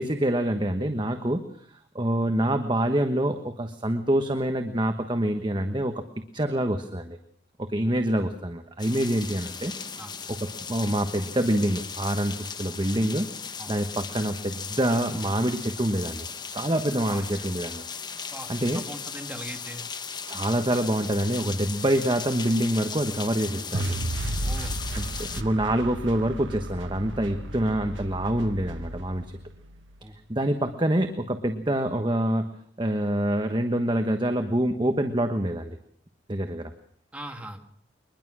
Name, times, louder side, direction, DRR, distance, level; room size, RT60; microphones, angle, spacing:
voice 1, 0.0-1.7 1.9-5.9 6.3-7.2 7.6-9.7 10.3-10.4 10.7-13.3 13.7-17.8 18.5-18.8 20.3-24.0 24.9-29.3 30.3-32.5 32.8-35.8 36.3-36.7, right 1 dB, 25° right, 6 dB, 1.2 m, -26 dB
sound 1, 8.8-25.4, left 6 dB, 25° left, 0.9 m, -37 dB
voice 2, 18.7-19.8 24.4-24.8 30.0-30.1 37.1-37.6, right 1 dB, 5° right, 4 dB, 2.0 m, -39 dB
sound 2, 23.7-29.9, right 1 dB, 85° right, 1.3 m, -33 dB
23.0 x 21.0 x 6.2 m, 0.64 s
head